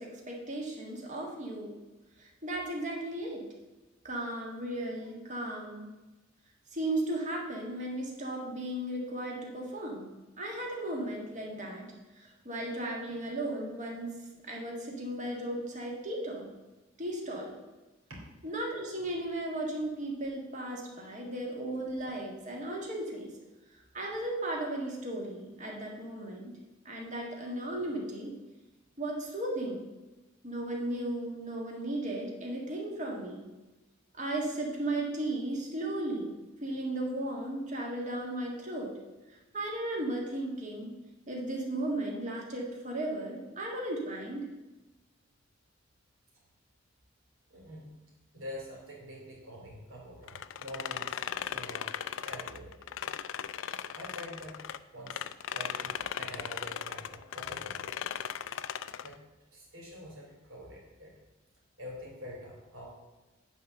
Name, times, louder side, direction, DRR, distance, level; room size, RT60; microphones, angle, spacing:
voice 1, 0.0-1.7 2.2-3.4 4.0-5.9 6.7-14.1 14.4-16.5 17.0-17.6 18.4-23.3 23.9-26.5 26.9-28.3 29.0-29.8 30.4-33.4 34.2-36.4 36.6-38.9 39.3-40.9 41.3-44.5, right 1 dB, 40° right, -1 dB, 1.7 m, -35 dB
voice 2, 47.5-47.9 48.3-51.9 52.2-52.8 53.9-54.6 54.9-55.2 55.5-58.0 59.0-59.2 59.5-61.1 61.8-62.9, equal, 80° right, -2 dB, 2.9 m, -46 dB
sound 1, 50.3-54.8 55.1-59.1, left 9 dB, 70° left, 0.4 m, -37 dB
9.2 x 3.9 x 6.8 m, 1.1 s
head